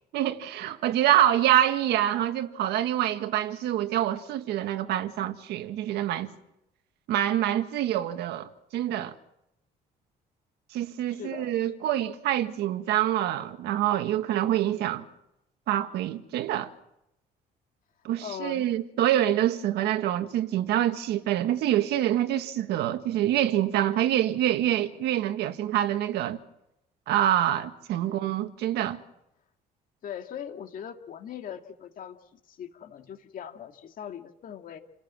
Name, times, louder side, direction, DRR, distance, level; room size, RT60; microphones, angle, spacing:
voice 1, 0.1-6.3 7.1-9.1 10.7-15.1 15.7-16.7 18.0-26.4 27.1-29.0, right 12 dB, 80° right, 1.8 m, -26 dB
voice 2, 11.1-11.6 18.2-18.7 28.0-28.4 30.0-32.2 32.5-34.8, left 9 dB, 55° left, 2.3 m, -40 dB
29.0 x 18.0 x 7.5 m
cardioid pair, 110°, 17 cm